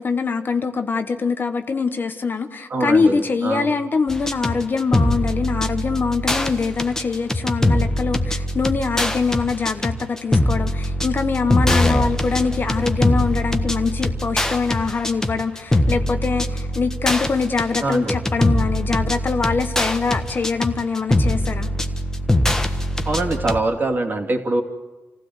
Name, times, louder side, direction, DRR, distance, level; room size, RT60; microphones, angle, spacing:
voice 1, 0.0-21.7, left 4 dB, 40° left, 8 dB, 1.2 m, -23 dB
voice 2, 2.7-3.7 17.8-18.2 23.0-24.6, right 2 dB, 35° right, 3 dB, 3.0 m, -23 dB
sound 1, 4.1-23.6, left 1 dB, 10° left, 1.5 m, -22 dB
28.0 x 16.0 x 8.1 m, 1.2 s
cardioid pair, 120°, 5 cm